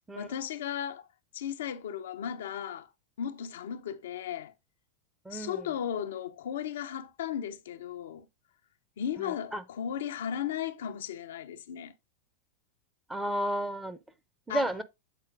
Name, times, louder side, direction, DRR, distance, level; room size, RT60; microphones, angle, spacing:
voice 1, 0.2-1.1 1.3-2.9 3.2-4.5 5.3-8.3 9.0-11.9 14.5-14.6, left 9 dB, 60° left, 0.5 m, -35 dB
voice 2, 5.3-5.6 9.2-9.6 13.1-14.0 14.5-14.8, right 1 dB, 5° right, 0.7 m, -32 dB
7.4 x 4.3 x 3.7 m
figure-of-eight pair, 90°, 0 cm